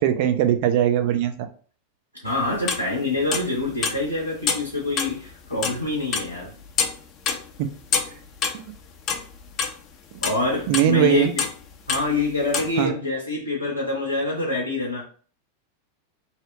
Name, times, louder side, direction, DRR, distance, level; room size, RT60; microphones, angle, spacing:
voice 1, 0.0-1.3 7.3-7.4 8.5-8.7 10.7-11.3 12.8-12.9, right 11 dB, 45° right, 7 dB, 0.4 m, -20 dB
voice 2, 2.2-6.5 10.2-11.4 11.9-15.0, left 2 dB, 85° left, -1 dB, 0.6 m, -26 dB
sound 1, 2.3-2.9 3.3-4.1 4.5-5.8 6.1-7.0 7.3-8.8 9.1-9.8 10.2-11.0 11.4-11.6 11.9-12.7, left 5 dB, 30° left, 0.4 m, -26 dB
2.7 x 2.0 x 3.6 m, 0.42 s
figure-of-eight pair, 90°, 0 cm